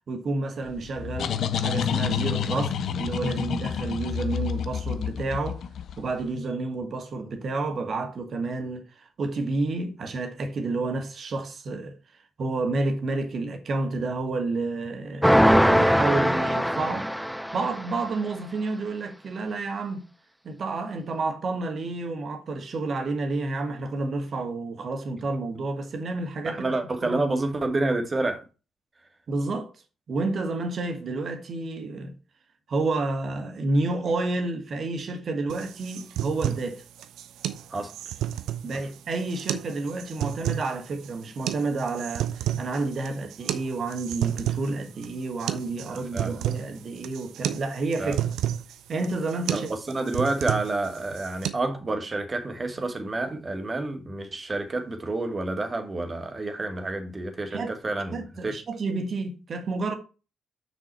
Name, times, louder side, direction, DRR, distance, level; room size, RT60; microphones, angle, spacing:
voice 1, 0.1-5.6 6.0-12.0 12.4-17.1 17.5-20.0 20.4-26.7 27.0-27.2 29.3-29.7 30.1-32.1 32.7-36.8 38.6-48.2 48.9-49.7 57.5-57.8 58.1-60.0, right 3 dB, 50° right, 1.9 m, -30 dB
sound 1, 0.7-6.2, left 8 dB, 60° left, 0.6 m, -29 dB
sound 2, 15.2-18.0, equal, ahead, 0.4 m, -21 dB
voice 2, 26.4-28.4 37.7-37.9 45.9-46.3 48.0-48.2 49.5-58.6, right 2 dB, 30° right, 2.1 m, -29 dB
sound 3, 35.5-51.5, right 12 dB, 65° right, 0.8 m, -32 dB
6.5 x 6.3 x 4.4 m
hypercardioid pair, 40°, 0 cm